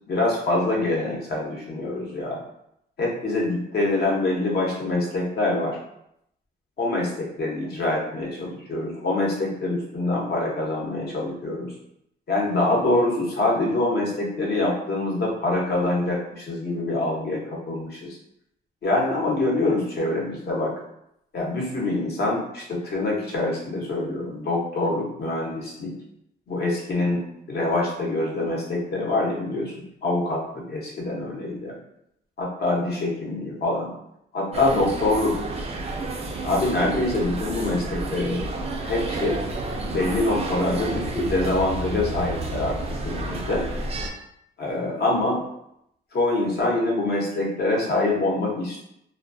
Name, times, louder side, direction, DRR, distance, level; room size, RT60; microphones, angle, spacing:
voice 1, 0.1-2.4 3.0-5.8 6.8-11.7 12.3-18.2 18.8-20.7 21.3-25.9 26.5-31.7 32.4-33.9 34.3-35.3 36.4-38.4 38.8-39.4 39.9-42.8 43.0-43.7 44.6-45.4 46.1-48.8, left 2 dB, 55° left, -3 dB, 0.9 m, -25 dB
sound 1, 34.5-44.1, right 2 dB, 30° right, 0.4 m, -30 dB
2.2 x 2.2 x 2.5 m, 0.78 s
cardioid pair, 90°, 20 cm